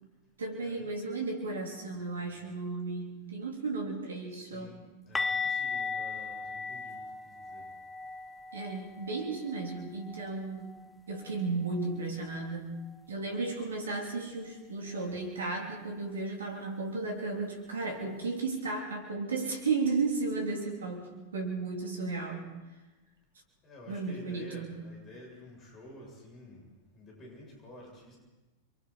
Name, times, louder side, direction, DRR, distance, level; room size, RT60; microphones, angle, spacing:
voice 1, 0.4-4.7 8.5-10.8 11.1-12.7 13.1-22.5 23.9-24.8, right 3 dB, 70° right, 1 dB, 3.2 m, -34 dB
voice 2, 1.9-2.4 4.3-7.7 23.6-26.7 26.9-28.2, left 1 dB, 30° left, -1 dB, 7.4 m, -51 dB
sound 1, 5.2-10.9 11.2-11.4 11.8-11.9 15.2-15.3, left 4 dB, 10° left, 0.9 m, -37 dB
29.0 x 23.0 x 4.3 m, 1.1 s
figure-of-eight pair, 90°, 0 cm